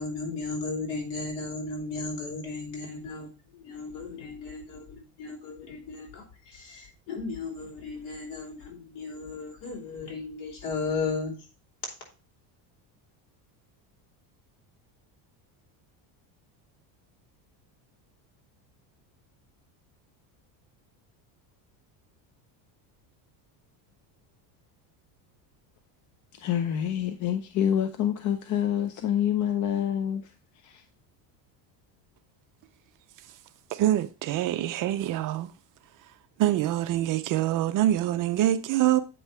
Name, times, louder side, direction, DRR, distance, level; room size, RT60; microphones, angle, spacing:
voice 1, 0.0-11.3, left 3 dB, 60° left, 4.4 m, -35 dB
voice 2, 26.3-30.8, left 9 dB, 40° left, 0.7 m, -27 dB
voice 3, 33.7-35.5 36.4-39.0, right 13 dB, 45° right, 0.5 m, -25 dB
8.2 x 5.5 x 4.3 m
cardioid pair, 145°, 47 cm